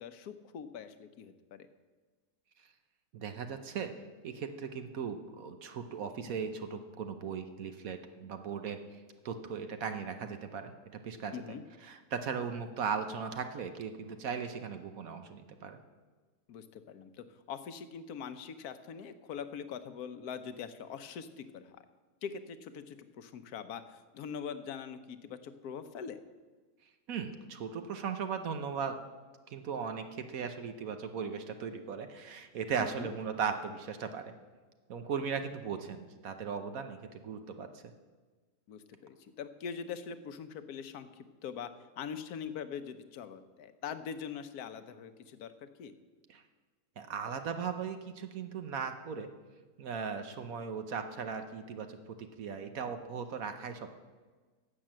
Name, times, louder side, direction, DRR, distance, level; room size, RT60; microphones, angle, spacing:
voice 1, 0.0-1.7 11.3-11.6 16.5-21.8 22.2-26.2 32.8-33.1 38.7-41.7 42.0-45.5 45.8-45.9, left 7 dB, 70° left, 10 dB, 1.2 m, -43 dB
voice 2, 3.1-3.9 4.2-8.8 9.2-11.3 11.8-15.8 27.1-28.9 29.5-34.3 34.9-37.7 46.3-46.4 47.0-49.3 49.8-53.9, right 6 dB, 60° right, 7 dB, 1.2 m, -38 dB
11.0 x 7.6 x 7.6 m, 1.3 s
omnidirectional pair, 1.8 m